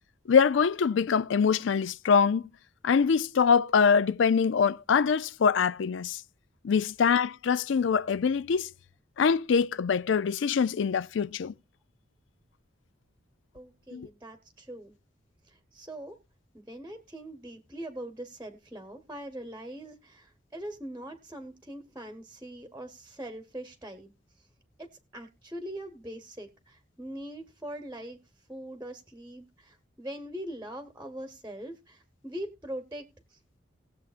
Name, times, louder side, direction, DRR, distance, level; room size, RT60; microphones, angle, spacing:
voice 1, 0.3-2.5 2.8-6.2 6.6-8.7 9.2-11.5 13.9-14.1, left 6 dB, 70° left, 0.4 m, -24 dB
voice 2, 13.5-15.0 15.5-16.2 16.5-24.1 24.8-24.9 25.1-28.2 28.5-33.4, right 1 dB, 10° right, 1.0 m, -42 dB
18.5 x 7.4 x 2.4 m
head